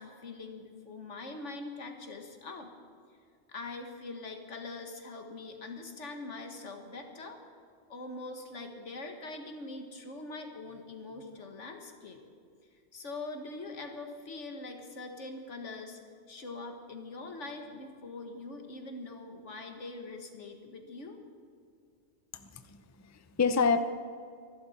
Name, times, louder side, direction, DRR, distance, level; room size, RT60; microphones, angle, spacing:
voice 1, 0.0-2.7 3.5-7.4 7.9-12.2 12.9-16.0 16.3-21.2, left 3 dB, 85° left, 4 dB, 1.9 m, -43 dB
voice 2, 22.3-22.8 23.1-23.8, left 5 dB, 20° left, 9 dB, 0.5 m, -28 dB
25.5 x 11.5 x 4.3 m, 2.2 s
omnidirectional pair, 1.2 m